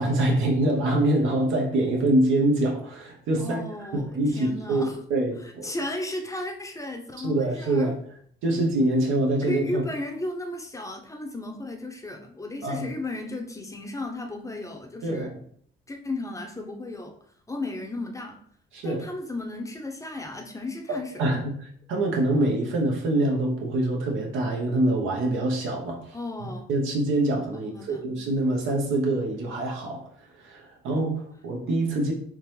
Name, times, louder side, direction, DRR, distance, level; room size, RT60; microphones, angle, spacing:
voice 1, 0.0-3.6 3.9-5.7 7.2-8.0 8.4-9.8 12.6-12.9 15.0-15.3 18.7-19.0 21.2-21.6 21.9-30.0 30.4-32.1, right 1 dB, 80° right, 1 dB, 0.9 m, -25 dB
voice 2, 3.4-4.1 4.4-5.0 5.4-7.9 9.4-15.3 15.9-17.2 17.5-18.4 18.8-21.4 26.1-26.7 27.5-28.1, left 2 dB, 15° left, 3 dB, 0.6 m, -34 dB
3.7 x 2.9 x 3.1 m, 0.62 s
cardioid pair, 90°, 20 cm